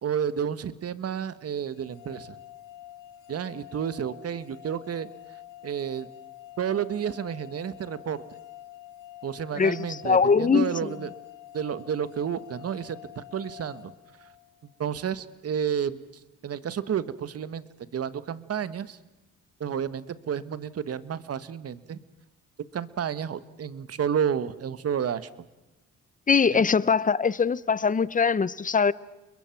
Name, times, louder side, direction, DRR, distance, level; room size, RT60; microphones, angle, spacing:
voice 1, 0.0-2.4 3.3-5.1 5.6-6.1 6.6-8.2 9.2-11.1 11.5-13.9 14.2-14.3 14.8-16.0 16.4-17.6 17.9-19.0 19.6-22.0 22.7-25.3 26.5-26.6, right 8 dB, 50° right, 1.5 m, -31 dB
sound 1, 1.8-14.7, left 13 dB, 90° left, 3.5 m, -47 dB
voice 2, 10.0-10.9 26.3-28.9, left 5 dB, 25° left, 0.8 m, -22 dB
30.0 x 22.0 x 6.0 m
cardioid pair, 90°, 30 cm